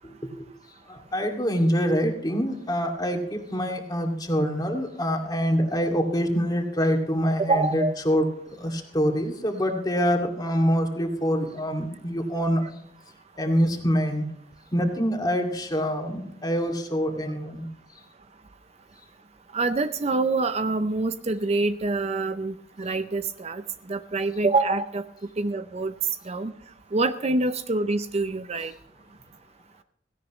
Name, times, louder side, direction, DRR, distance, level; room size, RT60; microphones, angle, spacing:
voice 1, 0.0-0.5 0.9-12.8 13.4-14.2 14.7-17.7, equal, 20° left, 3 dB, 2.3 m, -25 dB
voice 2, 7.4-7.9 19.5-23.6 23.9-25.0 25.4-25.9 26.3-26.5 26.9-28.7, right 3 dB, 35° right, 11 dB, 0.5 m, -25 dB
17.5 x 17.0 x 3.1 m, 0.69 s
head